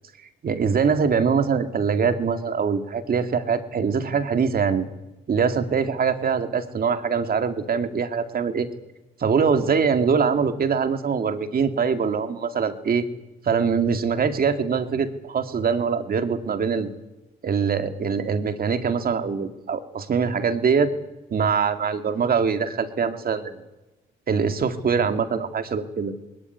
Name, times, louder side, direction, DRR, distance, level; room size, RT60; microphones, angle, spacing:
voice 1, 0.4-4.9 5.3-8.7 9.2-13.0 13.4-16.9 17.4-20.9 21.3-23.6 24.3-26.1, right 6 dB, 50° right, 8 dB, 2.2 m, -23 dB
20.5 x 19.0 x 9.6 m, 1.0 s
cardioid pair, 90°, 20 cm